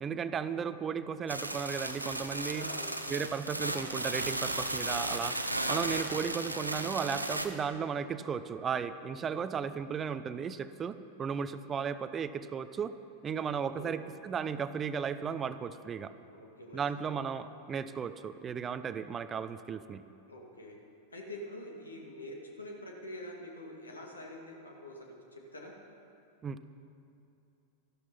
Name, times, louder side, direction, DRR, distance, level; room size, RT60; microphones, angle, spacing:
voice 1, 0.0-2.7 3.1-5.4 5.7-12.9 13.2-16.1 16.7-20.0 26.4-26.7, right 6 dB, 25° right, 13 dB, 0.5 m, -35 dB
sound 1, 1.3-7.5, right 1 dB, 85° right, 0.8 m, -35 dB
voice 2, 2.5-2.9 9.4-9.5 13.5-13.9 16.3-17.0 20.3-20.8 21.1-25.7, left 1 dB, 75° left, 0 dB, 2.1 m, -46 dB
13.5 x 12.0 x 5.7 m, 2.7 s
figure-of-eight pair, 90°, 0 cm